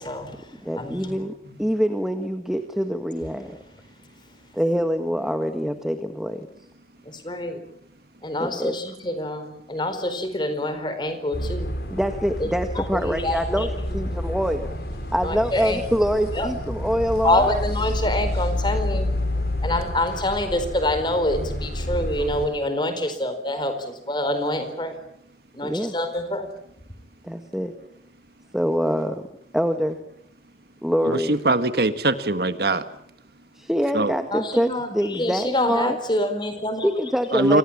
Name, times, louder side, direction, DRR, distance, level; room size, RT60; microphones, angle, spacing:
voice 1, 0.0-1.6 7.0-7.6 8.2-11.7 12.7-14.0 15.2-15.8 16.3-16.5 17.2-19.1 19.6-25.0 25.6-26.5 34.3-36.9, left 1 dB, 25° left, 9 dB, 4.4 m, -26 dB
voice 2, 0.6-3.6 4.5-6.5 8.4-8.7 11.9-14.7 15.1-17.6 25.6-25.9 27.2-27.7 28.5-29.2 29.5-30.0 30.8-31.4 33.5-36.0 36.8-37.6, equal, 5° right, 7 dB, 1.6 m, -25 dB
sound 1, 11.3-22.5, left 1 dB, 65° left, 6.9 m, -29 dB
voice 3, 31.0-32.8 33.9-34.1 37.3-37.6, right 2 dB, 60° right, 10 dB, 1.7 m, -22 dB
30.0 x 25.0 x 7.4 m, 0.72 s
head